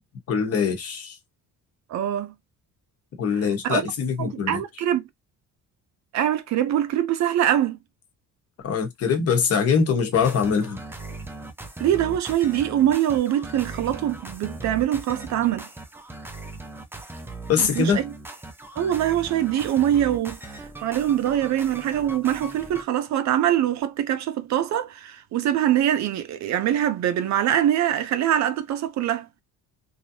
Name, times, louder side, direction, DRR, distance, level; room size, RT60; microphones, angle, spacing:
voice 1, 0.3-1.1 3.2-4.6 8.6-10.8 17.5-18.0, left 6 dB, 45° left, 1.0 m, -23 dB
voice 2, 1.9-2.3 3.3-3.8 4.2-5.0 6.1-7.8 11.8-15.7 17.6-18.1 18.8-29.3, right 11 dB, 60° right, 0.5 m, -23 dB
sound 1, 10.1-22.8, right 2 dB, 5° right, 0.4 m, -39 dB
3.2 x 2.6 x 2.7 m
cardioid pair, 170°, 32 cm